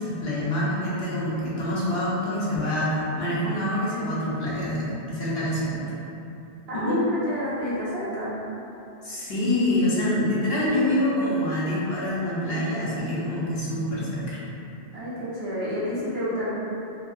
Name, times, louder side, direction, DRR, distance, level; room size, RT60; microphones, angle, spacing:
voice 1, 0.0-5.8 6.7-7.0 9.0-14.4, left 1 dB, 65° left, -7 dB, 0.8 m, -26 dB
voice 2, 6.7-8.3 14.9-16.5, equal, 60° right, -10 dB, 1.0 m, -30 dB
2.7 x 2.7 x 2.4 m, 2.9 s
omnidirectional pair, 1.2 m